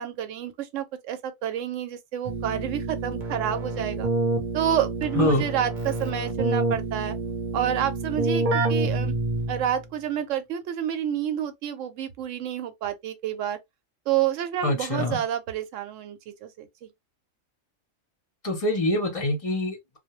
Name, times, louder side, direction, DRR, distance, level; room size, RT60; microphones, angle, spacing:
voice 1, 0.0-4.1 4.5-7.1 7.5-9.1 9.5-13.6 14.1-16.9, right 10 dB, 70° right, 0.9 m, -29 dB
Keyboard (musical), 2.2-9.8, right 2 dB, 45° right, 0.7 m, -28 dB
voice 2, 5.2-5.5 14.6-15.2 18.4-20.0, left 1 dB, 40° left, 0.5 m, -25 dB
2.2 x 2.1 x 2.9 m
omnidirectional pair, 1.4 m